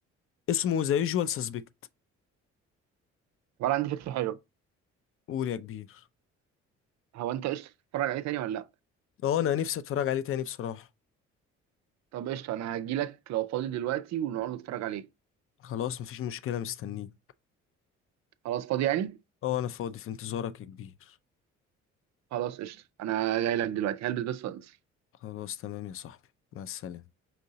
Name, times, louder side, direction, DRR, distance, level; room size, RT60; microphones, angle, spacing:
voice 1, 0.5-1.6 5.3-6.0 9.2-10.9 15.6-17.1 19.4-20.9 25.2-26.2 26.5-27.0, left 10 dB, 40° left, 0.4 m, -31 dB
voice 2, 3.6-4.4 7.1-8.7 12.1-15.1 18.4-19.2 22.3-24.7, right 12 dB, 50° right, 0.5 m, -31 dB
5.6 x 2.7 x 2.7 m
hypercardioid pair, 50°, 36 cm